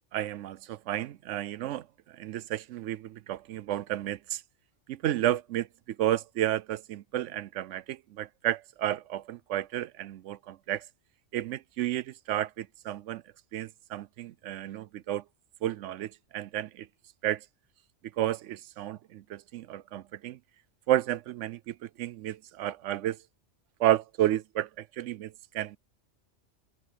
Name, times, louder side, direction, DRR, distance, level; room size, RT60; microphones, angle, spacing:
voice 1, 0.1-4.4 4.9-10.8 11.3-13.2 13.5-15.2 15.6-16.9 17.2-17.4 18.2-20.4 20.9-23.2 23.8-25.8, right 13 dB, 85° right, 0.9 m, -32 dB
omnidirectional pair, 1.2 m